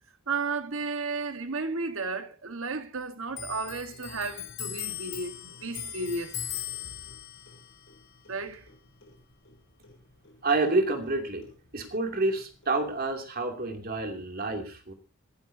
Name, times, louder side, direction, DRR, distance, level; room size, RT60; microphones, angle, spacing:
voice 1, 0.3-6.4 8.3-8.7, right 3 dB, 60° right, 1.6 m, -33 dB
Clock, 3.3-10.3 10.6-11.9 12.2-13.1, left 10 dB, 55° left, 4.4 m, -40 dB
voice 2, 10.4-11.5 11.7-14.9, right 3 dB, 40° right, 2.8 m, -28 dB
27.0 x 11.5 x 2.8 m
head